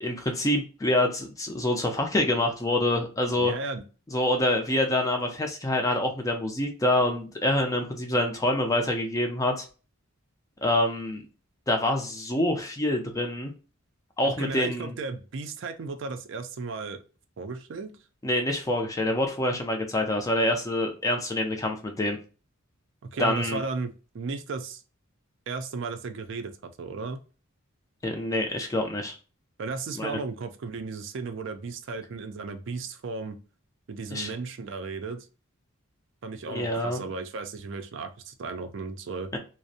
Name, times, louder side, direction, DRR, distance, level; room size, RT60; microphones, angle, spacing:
voice 1, 0.0-3.5 4.1-9.7 10.6-11.2 11.7-13.5 14.2-14.9 18.2-22.2 23.2-23.6 28.0-29.2 30.0-30.2 34.1-34.3 36.5-37.0 39.3-39.4, left 1 dB, 15° left, 3 dB, 0.4 m, -26 dB
voice 2, 3.4-3.8 14.2-17.0 17.4-17.9 23.1-24.8 25.5-27.2 29.6-33.4 33.9-35.3 36.2-39.3, right 4 dB, 55° right, 7 dB, 0.4 m, -35 dB
2.5 x 2.0 x 2.6 m, 0.35 s
head